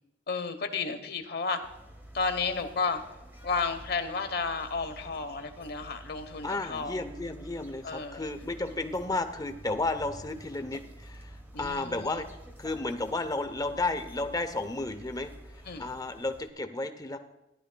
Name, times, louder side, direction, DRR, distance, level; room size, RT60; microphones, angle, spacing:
voice 1, 0.3-1.6 2.1-3.0 3.4-7.0 7.8-8.3 11.5-12.2 15.6-15.9, left 4 dB, 60° left, 8 dB, 0.9 m, -32 dB
sound 1, 1.6-16.5, right 1 dB, 10° right, 1.0 m, -49 dB
voice 2, 6.4-12.3 12.6-15.3 15.8-17.2, left 2 dB, 20° left, 8 dB, 0.7 m, -33 dB
15.5 x 11.0 x 2.2 m, 0.94 s
head